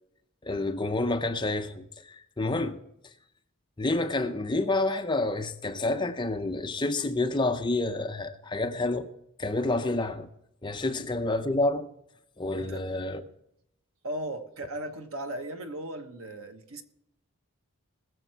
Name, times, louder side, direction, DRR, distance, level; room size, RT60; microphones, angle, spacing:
voice 1, 0.4-2.8 3.8-9.1 9.4-10.3 10.6-11.9 12.4-13.2, left 2 dB, 20° left, 0.7 m, -28 dB
voice 2, 14.0-16.8, right 1 dB, 75° right, 1.3 m, -37 dB
20.5 x 7.1 x 4.6 m
head